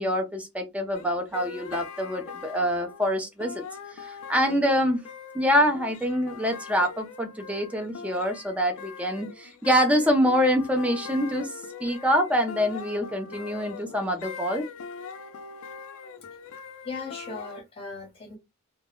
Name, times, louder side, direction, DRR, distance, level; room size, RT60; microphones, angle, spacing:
voice 1, 0.0-3.6 3.9-5.0 5.3-11.5 11.8-14.7, equal, 5° right, 0.4 m, -25 dB
sound 1, 0.9-17.6, left 5 dB, 70° left, 0.4 m, -42 dB
voice 2, 16.8-18.4, left 4 dB, 25° left, 0.7 m, -37 dB
2.2 x 2.1 x 2.9 m
head